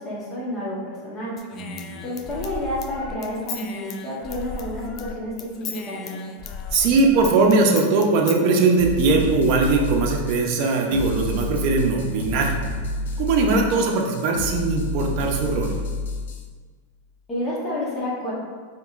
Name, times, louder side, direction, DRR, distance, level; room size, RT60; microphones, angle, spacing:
voice 1, 0.0-1.4 2.0-6.3 17.3-18.3, left 1 dB, 15° left, -7 dB, 1.1 m, -30 dB
Human voice / Scissors, 1.4-5.1 5.4-8.4, left 5 dB, 35° left, 0.4 m, -35 dB
voice 2, 1.5-2.0 6.7-12.6 13.2-15.8, right 3 dB, 50° right, 1 dB, 0.7 m, -20 dB
sound 1, 8.8-16.5, left 2 dB, 90° left, 0.6 m, -30 dB
5.8 x 3.0 x 2.5 m, 1.5 s
supercardioid pair, 140°, 0 cm